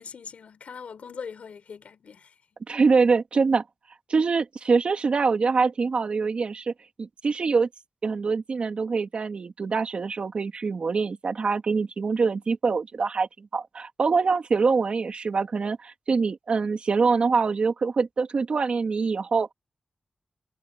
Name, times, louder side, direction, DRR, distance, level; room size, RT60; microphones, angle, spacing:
voice 1, 0.0-2.3, left 6 dB, 85° left, 4.8 m, -41 dB
voice 2, 2.7-3.6 4.1-6.7 7.0-7.7 8.0-19.5, right 4 dB, 55° right, 2.8 m, -24 dB
wide cardioid pair, 135°, 2 cm